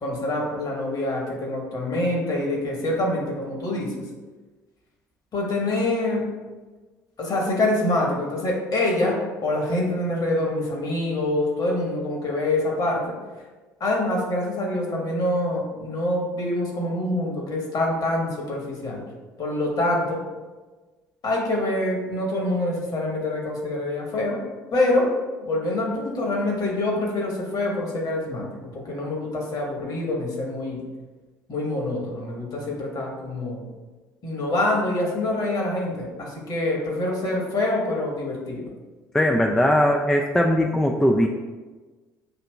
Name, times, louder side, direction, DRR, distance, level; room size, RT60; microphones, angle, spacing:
voice 1, 0.0-4.0 5.3-6.3 7.2-13.1 13.8-19.0 19.4-20.2 21.2-24.4 24.7-25.1 25.4-30.8 31.5-33.6 34.2-38.6, left 1 dB, 40° left, -1 dB, 1.2 m, -25 dB
voice 2, 39.1-41.3, equal, 5° left, 2 dB, 0.3 m, -19 dB
6.6 x 2.8 x 2.2 m, 1.3 s
figure-of-eight pair, 55°, 10 cm